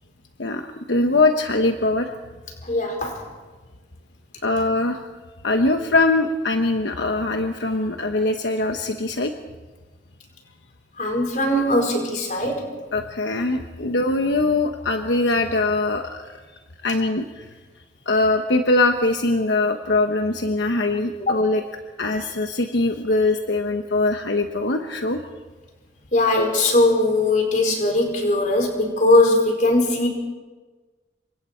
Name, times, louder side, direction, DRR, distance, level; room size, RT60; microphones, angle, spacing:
voice 1, 0.4-2.1 4.4-5.0 5.4-9.3 12.9-16.2 16.8-17.4 18.1-21.6 22.0-25.2, left 2 dB, 75° left, 5 dB, 1.2 m, -22 dB
voice 2, 2.6-3.2 11.0-12.7 21.3-21.4 26.1-30.1, left 2 dB, 45° left, 2 dB, 4.9 m, -20 dB
27.5 x 24.5 x 4.5 m, 1.3 s
head